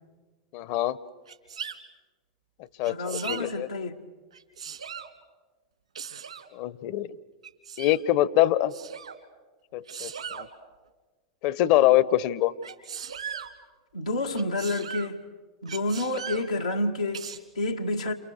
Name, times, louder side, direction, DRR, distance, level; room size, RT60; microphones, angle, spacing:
voice 1, 0.5-1.0 2.8-3.7 6.5-7.1 7.8-8.7 9.7-10.5 11.4-12.5, left 14 dB, 50° left, 1.1 m, -24 dB
Sneeze, 1.3-1.8 2.8-3.4 4.3-5.1 6.0-6.5 7.4-8.0 8.7-9.2 9.9-10.5 12.6-13.5 14.3-15.1 15.7-16.5 17.1-17.4, right 7 dB, 80° right, 2.8 m, -38 dB
voice 2, 2.8-3.9 13.9-15.2 15.6-18.1, left 2 dB, 90° left, 1.9 m, -29 dB
29.5 x 29.0 x 6.7 m
hypercardioid pair, 95°, 3 cm